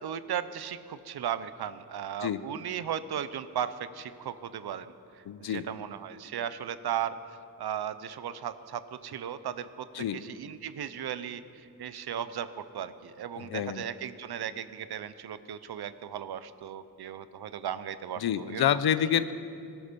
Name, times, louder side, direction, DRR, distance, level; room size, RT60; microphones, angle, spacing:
voice 1, 0.0-4.9 5.1-7.1 7.6-9.9 10.1-18.7, right 9 dB, 85° right, 13 dB, 0.7 m, -36 dB
voice 2, 5.3-5.7 9.9-10.2 13.4-13.8 18.2-19.3, left 9 dB, 80° left, 14 dB, 0.7 m, -28 dB
20.0 x 12.5 x 5.3 m, 2.5 s
wide cardioid pair, 165°, 37 cm